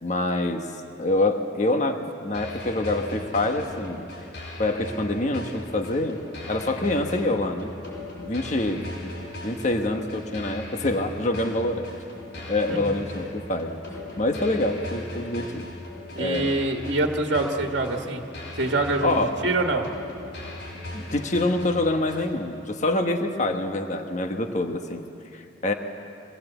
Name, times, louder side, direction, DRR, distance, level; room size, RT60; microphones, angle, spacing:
voice 1, 0.0-0.7 1.0-4.1 4.6-6.2 6.5-7.7 8.0-9.1 9.4-11.9 12.3-13.8 14.2-15.6 16.2-16.6 19.0-19.4 20.9-25.0 25.3-25.7, left 2 dB, 40° left, 5 dB, 1.2 m, -26 dB
sound 1, 2.3-22.3, left 1 dB, 70° left, 7.0 m, -38 dB
voice 2, 16.1-18.2 18.5-19.2 19.4-19.9, right 2 dB, 65° right, 3 dB, 1.5 m, -25 dB
24.0 x 20.0 x 8.1 m, 3.0 s
head